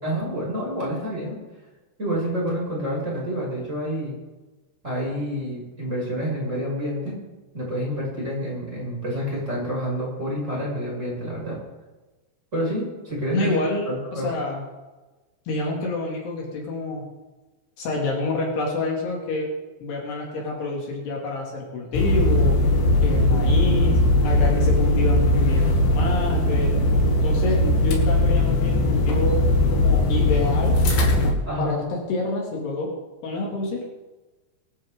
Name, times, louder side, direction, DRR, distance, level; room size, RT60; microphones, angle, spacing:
voice 1, 0.0-1.4 2.0-4.1 4.8-7.1 7.5-11.6 12.5-14.3 27.6-27.7 31.4-31.7, equal, 15° right, -5 dB, 6.2 m, -28 dB
voice 2, 13.3-14.6 15.5-17.1 17.8-19.5 19.8-22.6 23.0-26.8 27.2-30.8 31.6-32.9 33.2-33.9, left 3 dB, 65° left, -2 dB, 4.4 m, -28 dB
sound 1, 21.9-31.3, left 1 dB, 85° left, 4.6 m, -19 dB
23.5 x 12.5 x 3.8 m, 1.2 s
omnidirectional pair, 5.3 m